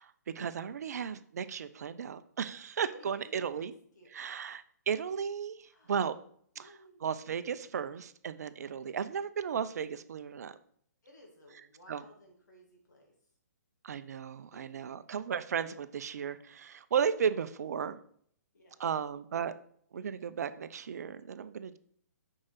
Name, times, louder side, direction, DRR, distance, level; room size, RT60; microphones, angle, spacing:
voice 1, 0.0-3.7 4.1-6.2 6.6-6.7 7.0-10.5 11.9-12.0 13.8-18.0 18.8-19.5 19.9-21.8, right 7 dB, 65° right, 12 dB, 0.7 m, -35 dB
voice 2, 2.9-3.6 3.9-4.1 5.7-6.0 6.5-7.0 8.5-8.9 11.0-13.1 14.5-14.6 18.5-18.8, equal, 80° left, 0 dB, 2.4 m, -57 dB
6.4 x 4.9 x 5.9 m, 0.62 s
hypercardioid pair, 135°, 9 cm